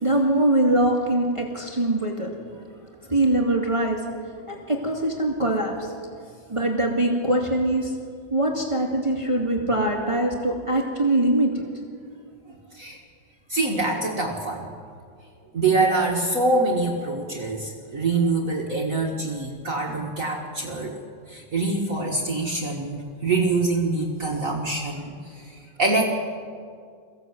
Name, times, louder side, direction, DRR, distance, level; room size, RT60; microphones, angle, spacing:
voice 1, 0.0-2.3 3.1-4.0 4.5-5.9 6.5-7.9 8.3-11.6, right 1 dB, 15° right, 0 dB, 2.1 m, -22 dB
voice 2, 13.5-14.7 15.5-21.0 21.3-26.0, right 3 dB, 45° right, 0 dB, 1.9 m, -25 dB
23.5 x 15.5 x 7.9 m, 2.2 s
omnidirectional pair, 2.2 m